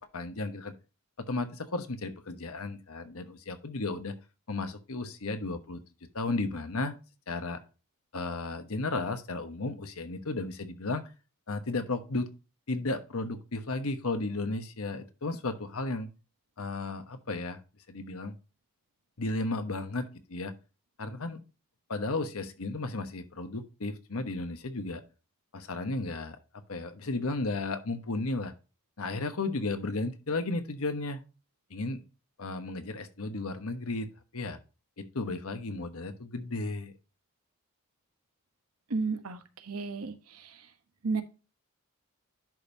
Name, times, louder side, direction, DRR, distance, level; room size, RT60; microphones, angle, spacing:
voice 1, 0.1-0.7 1.2-4.2 4.5-5.8 6.1-6.9 7.3-7.6 8.1-11.1 11.5-12.3 12.7-16.1 16.6-17.6 17.9-18.3 19.2-20.5 21.0-21.4 21.9-25.0 25.5-26.4 26.7-28.5 29.0-31.2 31.7-32.0 32.4-34.1 34.3-34.6 35.0-36.9, left 2 dB, 80° left, 8 dB, 1.2 m, -34 dB
voice 2, 38.9-40.5 41.0-41.2, right 4 dB, 90° right, 8 dB, 1.1 m, -33 dB
11.0 x 5.3 x 2.7 m, 0.32 s
head